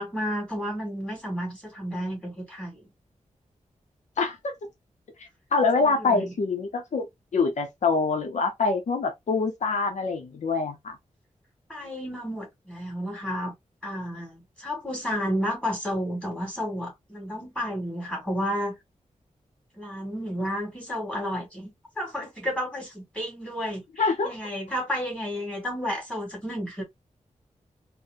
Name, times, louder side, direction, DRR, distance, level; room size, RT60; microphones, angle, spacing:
voice 1, 0.0-2.8 5.8-6.3 11.7-13.5 13.8-18.8 19.7-26.8, equal, 10° left, 2.2 m, -32 dB
voice 2, 4.2-4.5 5.5-11.0 24.0-24.3, left 4 dB, 70° left, 0.7 m, -25 dB
4.1 x 2.1 x 2.5 m
wide cardioid pair, 150°, 13 cm